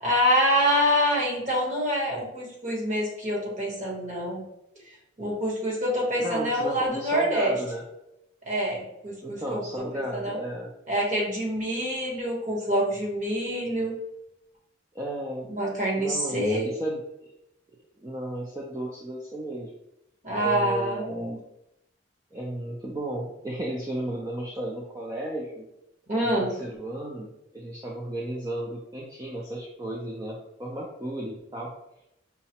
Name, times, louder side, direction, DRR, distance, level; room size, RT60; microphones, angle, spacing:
voice 1, 0.0-4.4 5.2-7.5 8.5-10.4 10.9-13.9 15.5-16.7 20.2-21.4 26.1-26.5, equal, 35° right, -3 dB, 1.1 m, -26 dB
voice 2, 6.2-7.8 9.2-10.7 14.9-15.5 16.0-17.3 18.0-19.7 20.4-21.3 22.3-25.7 26.2-31.7, right 1 dB, 15° right, -3 dB, 0.4 m, -34 dB
5.5 x 2.0 x 2.8 m, 0.83 s
head